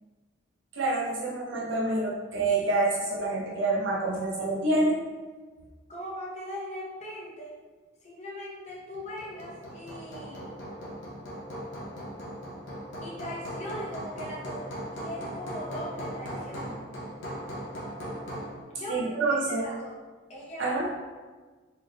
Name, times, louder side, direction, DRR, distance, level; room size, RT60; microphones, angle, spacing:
voice 1, 0.8-5.0 18.9-19.7 20.6-20.9, right 2 dB, 70° right, -5 dB, 0.6 m, -27 dB
voice 2, 5.9-7.6 8.0-10.5 13.0-16.8 18.7-19.9 20.3-20.7, left 1 dB, 35° left, -5 dB, 0.7 m, -40 dB
Hammer, 8.9-18.6, equal, 70° left, 0.7 m, -38 dB
3.6 x 3.2 x 2.2 m, 1.4 s
head